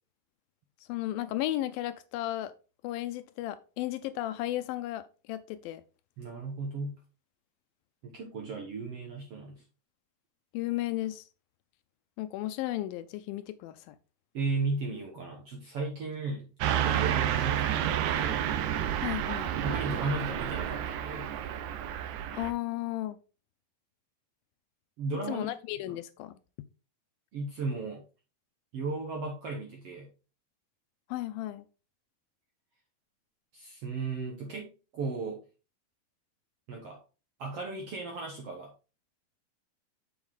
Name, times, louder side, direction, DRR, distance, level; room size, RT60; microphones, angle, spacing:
voice 1, 0.9-2.5 2.8-5.8 10.5-11.2 12.2-14.0 19.0-19.5 22.3-23.2 25.3-26.4 31.1-31.7, left 15 dB, 80° left, 2.2 m, -34 dB
voice 2, 6.2-7.0 8.0-9.6 14.3-18.4 19.6-21.3 25.0-25.5 27.3-28.0 28.7-30.1 33.5-35.4 36.7-37.0 37.4-38.7, right 3 dB, 60° right, 1.6 m, -35 dB
Car passing by / Truck, 16.6-22.5, right 10 dB, 90° right, 1.6 m, -30 dB
7.1 x 6.1 x 3.6 m
omnidirectional pair, 4.3 m